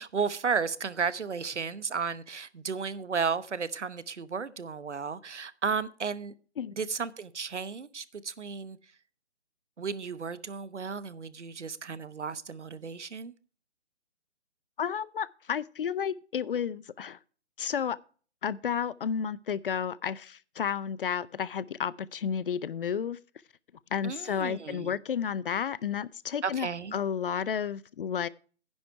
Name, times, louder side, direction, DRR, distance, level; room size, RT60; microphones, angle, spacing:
voice 1, 0.0-6.3 6.8-8.8 9.8-13.3 24.0-25.0 26.4-27.0, right 5 dB, 85° right, 1.0 m, -33 dB
voice 2, 14.8-17.2 17.6-18.0 18.4-23.2 23.9-28.3, left 7 dB, 50° left, 0.6 m, -32 dB
10.0 x 7.8 x 5.6 m
figure-of-eight pair, 145°, 34 cm